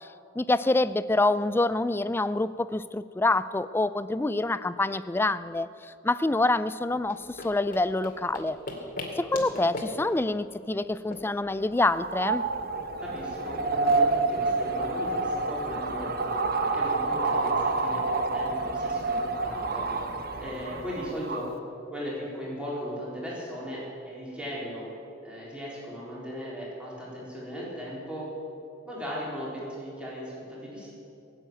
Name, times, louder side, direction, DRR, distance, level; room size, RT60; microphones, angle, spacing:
voice 1, 0.4-5.7 6.0-8.6 9.2-12.4, left 2 dB, 10° left, 15 dB, 0.3 m, -26 dB
sound 1, 7.0-12.2, left 1 dB, 45° left, 2.3 m, -40 dB
sound 2, 11.8-21.5, right 3 dB, 50° right, 1.0 m, -28 dB
voice 2, 13.0-20.0 20.4-21.5 21.9-24.9 25.2-28.3 28.9-30.9, equal, 5° right, -6 dB, 4.0 m, -37 dB
18.0 x 8.0 x 9.0 m, 2.7 s
head